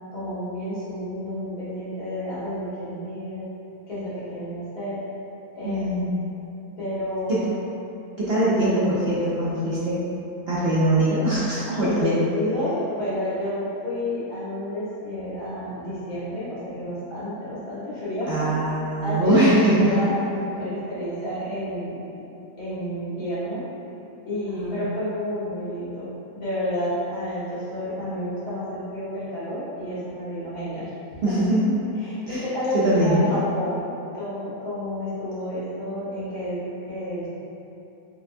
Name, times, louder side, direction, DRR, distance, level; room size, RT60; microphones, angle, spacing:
voice 1, 0.1-3.5 3.9-5.0 5.5-6.0 6.8-7.4 8.4-8.5 11.7-18.6 19.0-22.3 22.6-23.6 24.2-30.9 31.3-31.4 32.0-33.9 34.1-37.3, left 1 dB, 85° left, -12 dB, 2.0 m, -30 dB
voice 2, 5.6-6.2 7.3-7.4 8.2-10.0 10.5-12.2 18.3-20.0 24.6-24.8 31.2-31.6 32.3-32.4 32.7-33.3, right 1 dB, 60° right, -9 dB, 0.7 m, -22 dB
5.7 x 2.2 x 2.6 m, 2.9 s
omnidirectional pair, 1.6 m